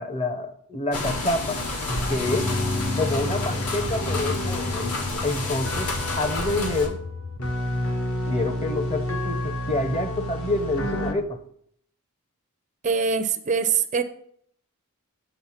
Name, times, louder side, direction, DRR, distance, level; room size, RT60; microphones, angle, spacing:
voice 1, 0.0-1.6 2.1-2.5 3.0-5.9 6.2-7.0 8.3-11.4, left 2 dB, 25° left, 0.7 m, -27 dB
sound 1, 0.9-6.9, left 2 dB, 80° left, 1.5 m, -30 dB
sound 2, 1.9-11.1, left 1 dB, 65° left, 1.1 m, -29 dB
voice 2, 12.8-14.0, right 6 dB, 35° right, 0.5 m, -23 dB
7.9 x 4.2 x 5.7 m
head